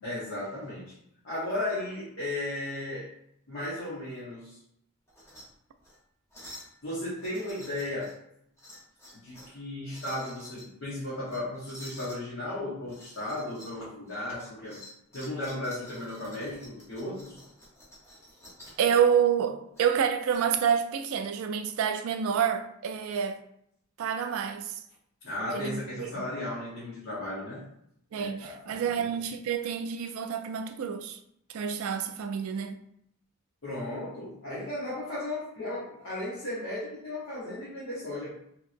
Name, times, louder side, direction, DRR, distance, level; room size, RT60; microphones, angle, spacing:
voice 1, 0.0-0.9 1.2-3.1 3.5-4.6 6.8-8.2 9.1-14.8 15.1-17.4 25.2-27.7 28.1-29.1 33.6-38.3, left 1 dB, 75° left, 1.1 m, -35 dB
sound 1, 5.1-5.4 5.8-6.0 6.3-6.7 7.2-8.1 8.6-9.5 9.9-10.7 11.3-12.2 12.9-13.8 14.1-18.8 19.7-20.4, left 1 dB, 15° left, 0.8 m, -49 dB
voice 2, 18.8-23.4 24.0-24.8 25.4-26.3 28.1-31.2 31.5-32.8, right 7 dB, 85° right, 0.3 m, -28 dB
2.9 x 2.7 x 2.5 m
head